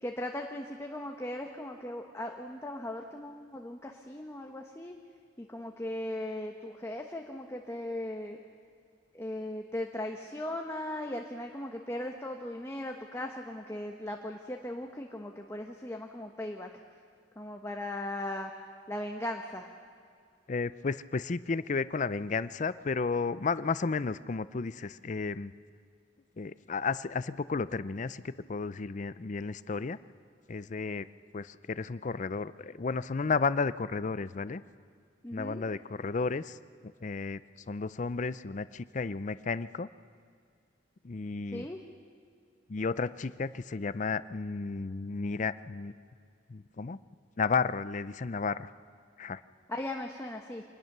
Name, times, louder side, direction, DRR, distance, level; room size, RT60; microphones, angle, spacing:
voice 1, 0.0-5.0 5.4-8.4 9.1-16.7 17.4-18.5 18.9-19.7 35.2-35.6 41.5-41.8 49.7-50.6, left 1 dB, 15° left, 2 dB, 1.1 m, -38 dB
voice 2, 20.5-25.5 26.4-30.0 30.5-31.1 31.3-34.6 35.3-36.6 36.8-37.4 37.7-39.9 41.0-41.7 42.7-45.9 46.5-47.0 47.4-48.7 49.2-49.4, left 4 dB, 45° left, 15 dB, 0.5 m, -33 dB
26.0 x 20.0 x 6.7 m, 2.2 s
head